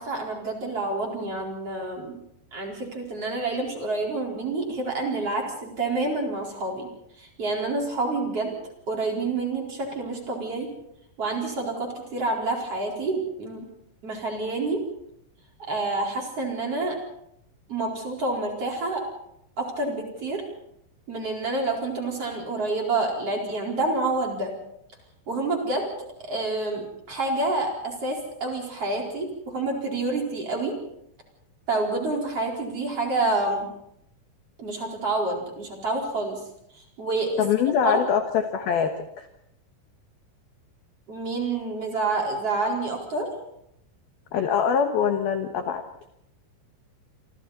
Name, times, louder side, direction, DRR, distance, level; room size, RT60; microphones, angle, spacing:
voice 1, 0.0-2.1 2.5-6.9 7.2-8.5 8.9-10.7 11.2-13.6 14.0-14.8 15.6-17.0 17.7-19.0 19.6-20.4 21.1-24.5 25.3-25.9 26.2-30.7 31.7-33.7 34.6-36.4 37.0-37.4 37.8-38.0 41.1-43.3, right 2 dB, 30° right, 0 dB, 4.8 m, -28 dB
voice 2, 37.4-39.3 44.3-45.8, left 7 dB, 70° left, 6 dB, 2.4 m, -24 dB
28.5 x 26.0 x 4.2 m, 0.76 s
omnidirectional pair, 6.0 m